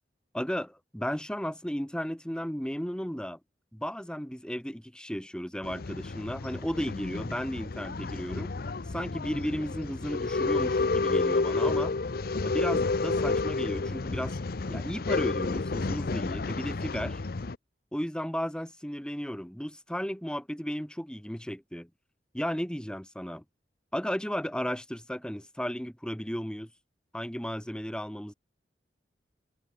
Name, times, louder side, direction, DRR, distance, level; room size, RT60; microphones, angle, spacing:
voice 1, 0.3-3.4 3.7-8.5 8.9-12.0 12.4-14.4 14.7-17.2 17.9-21.9 22.3-23.4 23.9-26.7 27.1-28.3, equal, 5° left, 1.9 m, -34 dB
Male speech man speaking / Chatter / Rattle, 5.6-17.6, left 3 dB, 60° left, 0.7 m, -30 dB
head